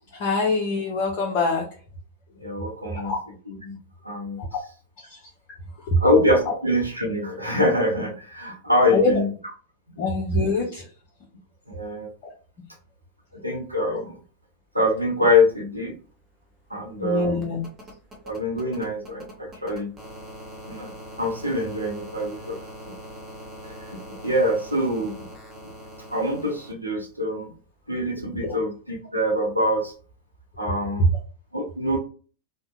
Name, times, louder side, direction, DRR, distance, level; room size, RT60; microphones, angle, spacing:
voice 1, 0.1-1.7 2.9-3.2 5.1-5.2 5.8-6.0 6.5-6.6 8.9-9.2 10.0-10.9 12.2-12.3 17.0-17.6 28.4-28.6, left 3 dB, 40° left, -1 dB, 0.5 m, -24 dB
voice 2, 2.4-3.1 3.5-3.8 4.0-4.4 6.0-9.3 11.7-12.1 13.3-14.2 14.7-16.0 16.7-17.4 18.2-19.9 20.7-22.9 23.6-25.2 26.1-27.5 27.9-29.9 30.6-31.1 31.5-32.0, left 1 dB, 90° right, 1 dB, 0.6 m, -24 dB
sound 1, 15.9-26.7 28.2-28.3, right 1 dB, 20° right, 0.8 m, -43 dB
2.7 x 2.1 x 2.3 m, 0.39 s
figure-of-eight pair, 90°, 0 cm